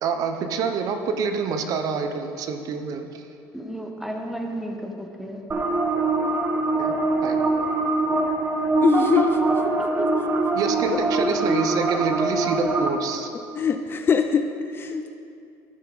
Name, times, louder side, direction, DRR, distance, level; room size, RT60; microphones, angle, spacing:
voice 1, 0.0-3.2 6.8-7.4 10.5-13.3, right 5 dB, 55° right, 7 dB, 0.7 m, -27 dB
voice 2, 3.5-5.4 9.8-10.1, right 1 dB, 5° right, 2 dB, 1.1 m, -33 dB
sound 1, 5.5-12.9, right 2 dB, 25° right, 0.9 m, -23 dB
voice 3, 8.8-9.7 10.9-11.0 13.5-14.4 14.7-15.0, left 6 dB, 30° left, 7 dB, 0.5 m, -22 dB
14.0 x 5.7 x 3.9 m, 2.5 s
cardioid pair, 115°, 7 cm